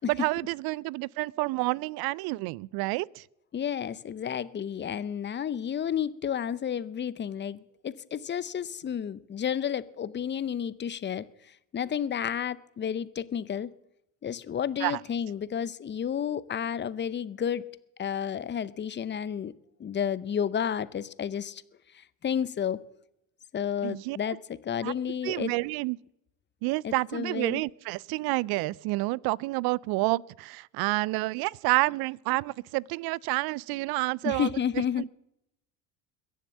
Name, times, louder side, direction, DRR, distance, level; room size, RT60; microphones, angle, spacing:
voice 1, 0.0-3.2 14.8-15.0 23.8-24.4 24.8-24.9 25.2-26.0 26.6-34.5 35.0-35.1, right 22 dB, 55° right, 0.5 m, -29 dB
voice 2, 3.5-11.3 11.7-13.7 14.2-17.6 18.0-19.5 19.8-21.6 21.9-22.8 23.5-25.5 26.8-27.6 34.2-35.0, left 8 dB, 25° left, 0.7 m, -31 dB
22.0 x 7.4 x 7.3 m
hypercardioid pair, 80°, 44 cm